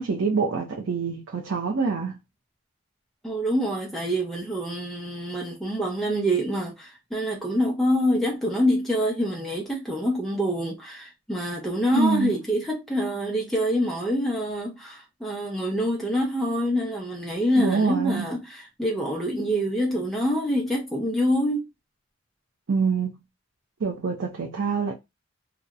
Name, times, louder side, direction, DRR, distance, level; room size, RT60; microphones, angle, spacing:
voice 1, 0.0-2.2 11.9-12.3 17.5-18.3 22.7-23.2 23.8-24.9, right 4 dB, 70° right, 0.5 m, -25 dB
voice 2, 3.2-21.7, equal, ahead, 0.5 m, -26 dB
2.7 x 2.0 x 2.3 m
head